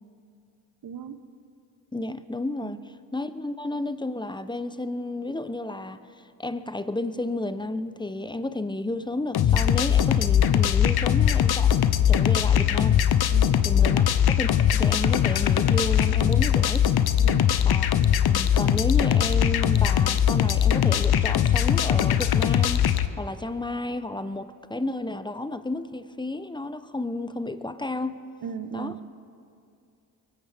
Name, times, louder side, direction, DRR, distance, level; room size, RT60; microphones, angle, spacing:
voice 1, 0.8-1.2 2.6-2.8 12.4-12.5 13.3-14.0 17.2-17.5 28.4-29.0, right 8 dB, 50° right, 10 dB, 1.1 m, -37 dB
voice 2, 1.9-2.8 3.1-13.0 13.6-16.9 17.6-17.9 18.3-22.9 23.2-28.2 28.7-28.9, left 2 dB, 10° left, 12 dB, 0.8 m, -32 dB
sound 1, 9.3-23.1, left 9 dB, 55° left, 0.8 m, -21 dB
23.5 x 15.0 x 3.5 m, 2.5 s
supercardioid pair, 45°, 44 cm